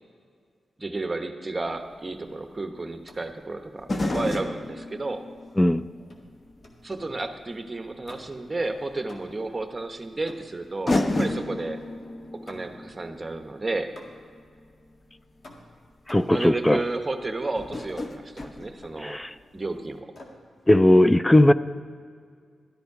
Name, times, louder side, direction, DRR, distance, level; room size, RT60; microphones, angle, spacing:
voice 1, 0.8-5.2 6.8-11.8 12.5-13.9 16.3-19.2 19.5-20.1, right 2 dB, 30° right, 7 dB, 1.0 m, -32 dB
sound 1, 1.7-1.8 3.8-6.8 7.3-7.4 8.9-9.0 10.2-10.3 10.9-15.0 15.9-16.0 16.3-16.5 17.6-19.5 19.7-19.8, left 2 dB, 35° left, 0.9 m, -32 dB
sound 2, 3.1-3.4 4.1-4.5 6.1-7.2 8.0-8.6 9.1-9.6 10.3-11.4 12.5-12.9 14.0-14.4 15.4-16.5 17.9-18.1 18.4-19.1 20.1-20.5, left 1 dB, 55° left, 1.8 m, -49 dB
voice 2, 16.1-16.8 19.0-19.3 20.7-21.5, left 1 dB, 15° left, 15 dB, 0.4 m, -18 dB
12.5 x 10.5 x 4.8 m, 2.1 s
cardioid pair, 55°, 0 cm